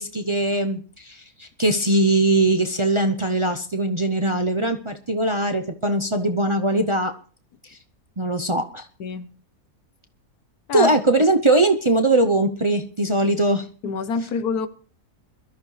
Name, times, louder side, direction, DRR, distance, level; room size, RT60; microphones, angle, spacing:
voice 1, 0.0-7.1 7.7-7.8 8.2-8.9 10.7-13.7, right 2 dB, 30° right, 0.6 m, -21 dB
voice 2, 13.8-14.7, left 5 dB, 90° left, 1.4 m, -26 dB
22.5 x 13.0 x 3.2 m
omnidirectional pair, 1.6 m